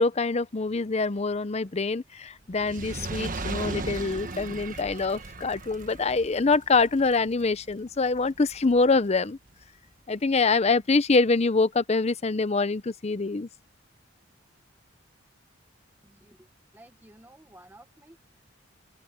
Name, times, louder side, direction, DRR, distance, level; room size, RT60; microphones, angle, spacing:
voice 1, 0.0-9.4 10.1-13.5, left 3 dB, 30° left, 0.6 m, -25 dB
Fire, 2.5-8.9 9.6-9.7, right 2 dB, 40° right, 1.4 m, -37 dB
voice 2, 16.0-16.5 16.7-18.2, right 1 dB, 10° right, 1.1 m, -53 dB
open air
head